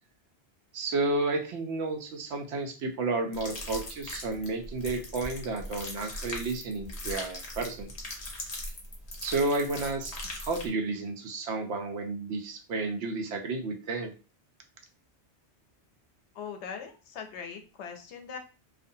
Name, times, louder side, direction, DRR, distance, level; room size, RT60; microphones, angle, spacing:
voice 1, 0.7-7.9 9.2-14.1, right 3 dB, 80° right, 5 dB, 0.9 m, -31 dB
sound 1, 3.3-10.7, left 1 dB, 40° left, 0.7 m, -39 dB
voice 2, 16.3-18.4, left 6 dB, 85° left, 5 dB, 0.9 m, -40 dB
2.4 x 2.1 x 2.6 m, 0.34 s
omnidirectional pair, 1.1 m